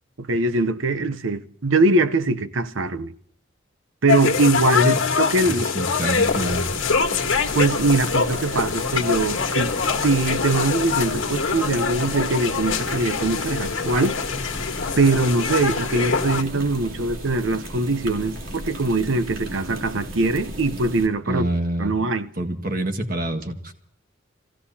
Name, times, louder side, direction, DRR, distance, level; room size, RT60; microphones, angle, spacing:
voice 1, 0.2-3.1 4.0-5.7 7.5-14.2 15.0-21.5 21.8-22.3, right 2 dB, 70° right, 0.8 m, -22 dB
sound 1, 4.1-16.4, left 5 dB, 75° left, 1.6 m, -24 dB
voice 2, 5.4-6.7 21.2-21.9 22.4-23.7, right 1 dB, 45° right, 1.7 m, -26 dB
sound 2, 6.1-21.1, right 1 dB, 90° right, 3.1 m, -36 dB
29.0 x 16.0 x 2.8 m
head